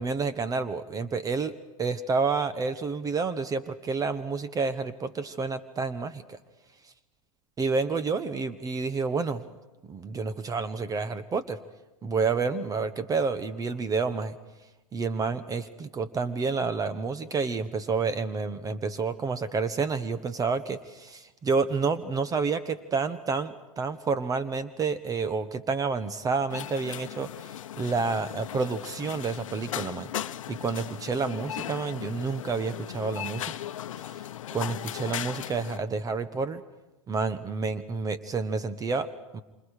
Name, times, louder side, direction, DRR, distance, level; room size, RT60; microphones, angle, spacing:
voice 1, 0.0-1.5 1.8-6.4 7.6-9.4 9.8-11.6 12.0-14.4 14.9-33.5 34.1-34.2 34.5-36.6 37.1-39.4, right 4 dB, 20° right, 12 dB, 1.2 m, -29 dB
sound 1, 26.5-35.8, left 11 dB, 75° left, 0.9 m, -37 dB
27.5 x 25.5 x 5.0 m, 1.1 s
hypercardioid pair, 105°, 17 cm